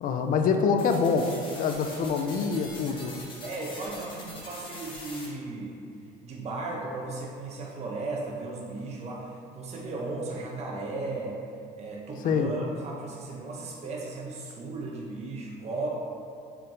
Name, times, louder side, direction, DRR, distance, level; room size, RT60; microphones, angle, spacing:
voice 1, 0.0-3.2 12.2-12.5, left 5 dB, 55° left, 5 dB, 0.4 m, -25 dB
sound 1, 0.8-5.3, left 2 dB, 30° left, 0.9 m, -43 dB
voice 2, 3.4-5.8 6.2-11.4 11.8-15.9, right 3 dB, 40° right, -3 dB, 0.6 m, -36 dB
4.5 x 2.5 x 3.8 m, 2.4 s
cardioid pair, 110°, 17 cm